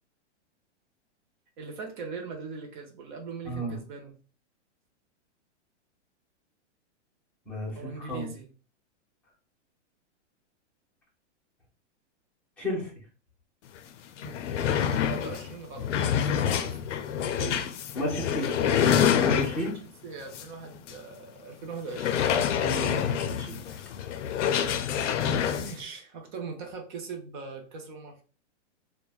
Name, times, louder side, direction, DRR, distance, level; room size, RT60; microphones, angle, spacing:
voice 1, 1.6-4.1 7.8-8.5 14.2-14.4 14.7-16.8 17.2-17.7 19.8-22.5 25.6-28.2, right 4 dB, 45° right, 2 dB, 0.6 m, -41 dB
voice 2, 3.5-3.8 7.5-8.3 12.6-12.9 17.9-19.7 22.6-23.8, equal, 5° left, -5 dB, 0.6 m, -33 dB
sound 1, 13.8-13.9 14.1-19.8 20.3-20.5 20.9-21.0 21.9-25.8, left 8 dB, 85° left, 0.5 m, -27 dB
3.0 x 2.1 x 2.3 m, 0.37 s
hypercardioid pair, 155°, 35 cm